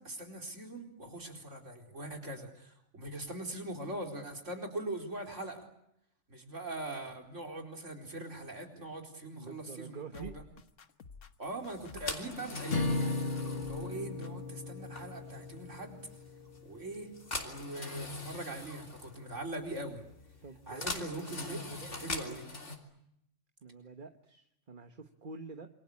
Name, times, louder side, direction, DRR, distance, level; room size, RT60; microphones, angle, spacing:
voice 1, 0.0-5.7 6.3-10.4 11.4-13.2 13.7-16.0 16.6-17.1 17.4-20.0 20.7-22.4, right 2 dB, 80° right, 3 dB, 4.7 m, -42 dB
voice 2, 9.3-10.6 20.4-22.4 23.6-25.7, right 4 dB, 45° right, 7 dB, 1.4 m, -48 dB
sound 1, 10.1-12.2 12.7-13.1 13.3-13.9 14.2-14.3, left 5 dB, 85° left, 1.6 m, -51 dB
sound 2, 11.7-22.8, left 2 dB, 70° left, 3.6 m, -43 dB
sound 3, 12.7-17.0, left 3 dB, 50° left, 1.9 m, -36 dB
27.5 x 24.5 x 8.5 m, 0.78 s
omnidirectional pair, 1.3 m